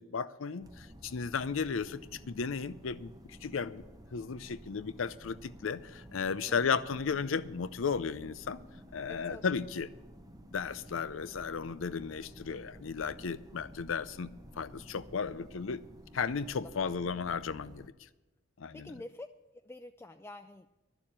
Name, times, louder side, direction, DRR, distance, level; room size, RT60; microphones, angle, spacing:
voice 1, 0.0-3.1 3.4-3.8 4.1-8.6 8.9-9.9 10.5-14.3 14.6-15.8 16.1-17.9 18.6-18.9, left 5 dB, 80° left, 15 dB, 0.6 m, -34 dB
sound 1, 0.6-17.9, equal, 20° right, 0.8 m, -53 dB
voice 2, 9.1-9.6 16.6-16.9 18.7-19.3 19.6-20.7, left 2 dB, 15° left, 8 dB, 0.3 m, -47 dB
11.5 x 7.0 x 8.7 m, 1.1 s
head